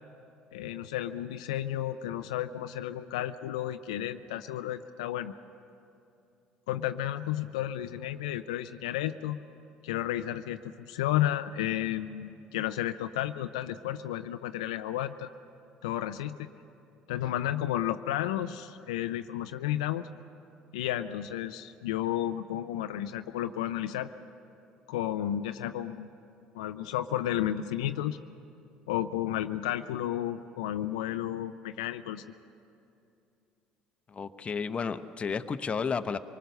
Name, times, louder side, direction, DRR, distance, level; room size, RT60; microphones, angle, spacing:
voice 1, 0.5-5.3 6.7-9.4 9.8-15.3 15.8-16.5 17.1-20.1 20.7-24.1 24.9-26.1 26.5-28.2 28.9-32.2, left 12 dB, 85° left, 9 dB, 0.5 m, -32 dB
voice 2, 34.1-36.2, left 5 dB, 35° left, 10 dB, 0.9 m, -32 dB
24.0 x 20.0 x 6.6 m, 2.7 s
hypercardioid pair, 70°, 3 cm